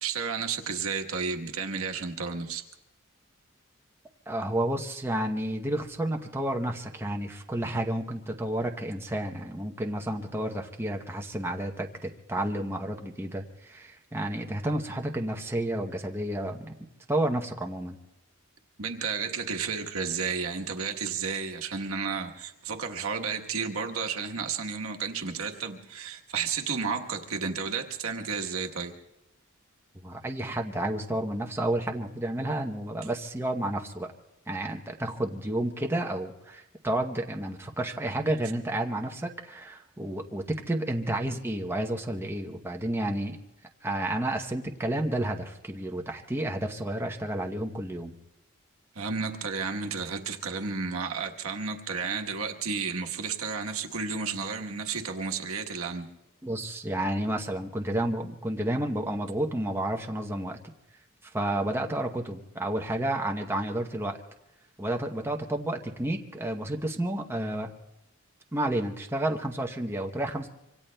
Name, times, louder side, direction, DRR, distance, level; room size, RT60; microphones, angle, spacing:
voice 1, 0.0-2.6 18.8-28.9 48.9-56.1, right 5 dB, 80° right, 3 dB, 1.2 m, -32 dB
voice 2, 4.3-16.7 17.1-18.0 30.0-34.1 34.5-43.4 43.8-48.1 56.4-60.6 61.2-64.2 64.8-67.7 68.5-70.5, right 1 dB, 10° right, 2 dB, 0.8 m, -31 dB
26.0 x 25.0 x 2.2 m, 0.91 s
head